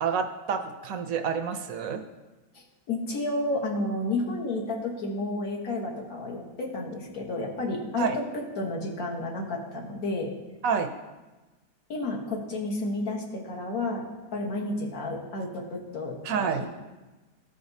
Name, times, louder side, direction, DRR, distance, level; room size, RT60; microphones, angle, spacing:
voice 1, 0.0-2.0 8.0-8.1 10.6-10.9 16.2-16.6, right 6 dB, 70° right, 6 dB, 0.9 m, -28 dB
voice 2, 2.5-10.3 11.9-14.0 14.3-16.7, left 2 dB, 70° left, -1 dB, 1.6 m, -31 dB
14.0 x 5.0 x 2.7 m, 1.2 s
omnidirectional pair, 1.6 m